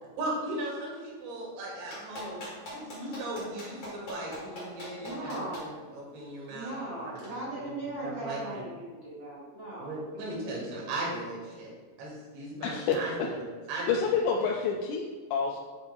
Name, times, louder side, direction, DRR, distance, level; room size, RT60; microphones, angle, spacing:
voice 1, 0.2-8.6 9.8-11.7 12.0-13.9 14.4-14.5, right 1 dB, 85° right, -3 dB, 4.2 m, -38 dB
Clapping, 1.9-5.6 7.2-7.3, left 1 dB, 35° left, 2.5 m, -41 dB
voice 2, 5.0-5.7 6.5-10.2, right 2 dB, 45° right, -8 dB, 1.6 m, -38 dB
voice 3, 12.6-13.3 13.9-15.6, left 5 dB, 85° left, 0 dB, 2.9 m, -28 dB
9.5 x 7.1 x 2.4 m, 1.4 s
omnidirectional pair, 5.0 m